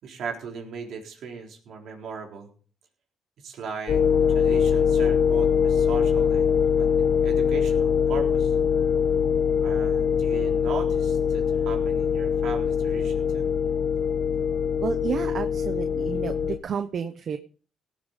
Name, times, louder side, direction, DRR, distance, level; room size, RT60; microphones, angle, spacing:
voice 1, 0.0-2.5 3.4-4.0 4.3-6.5 6.8-8.5 9.6-13.5, right 5 dB, 70° right, 1 dB, 3.9 m, -38 dB
sound 1, 3.9-16.6, left 7 dB, 60° left, 1.2 m, -23 dB
voice 2, 14.8-17.4, right 7 dB, 55° right, 9 dB, 1.0 m, -31 dB
17.5 x 7.3 x 5.3 m, 0.40 s
cardioid pair, 90°, 0 cm